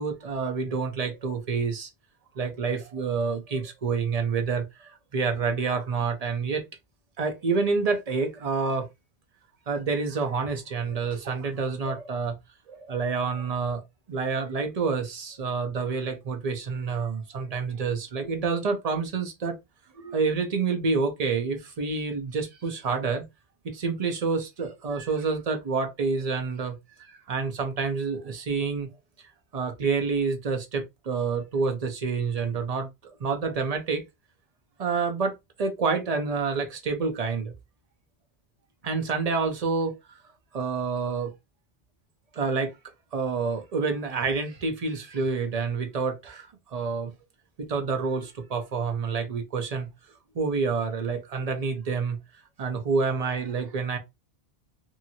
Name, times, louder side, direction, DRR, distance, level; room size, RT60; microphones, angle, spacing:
voice 1, 0.0-1.9 2.3-6.6 7.2-8.9 9.7-12.3 12.7-13.8 14.1-19.5 19.9-23.2 23.6-28.9 29.5-32.9 33.2-34.0 34.8-37.5 38.8-40.2 40.5-41.3 42.3-42.8 43.1-47.1 47.6-49.9 50.3-52.2 52.6-54.0, right 4 dB, 45° right, 0.6 m, -28 dB
2.8 x 2.5 x 2.7 m
omnidirectional pair, 1.1 m